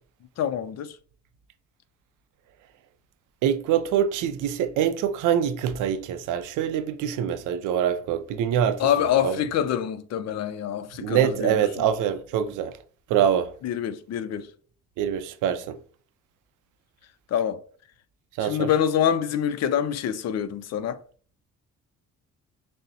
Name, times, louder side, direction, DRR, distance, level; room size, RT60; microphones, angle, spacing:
voice 1, 0.4-1.0 8.8-11.9 13.6-14.5 17.3-17.6 18.4-21.0, left 9 dB, 60° left, 0.5 m, -26 dB
voice 2, 3.4-8.8 9.2-9.4 11.0-12.7 13.1-13.5 15.0-15.8 18.4-18.7, right 9 dB, 85° right, 0.5 m, -24 dB
6.2 x 2.1 x 2.7 m
cardioid pair, 90°, 30 cm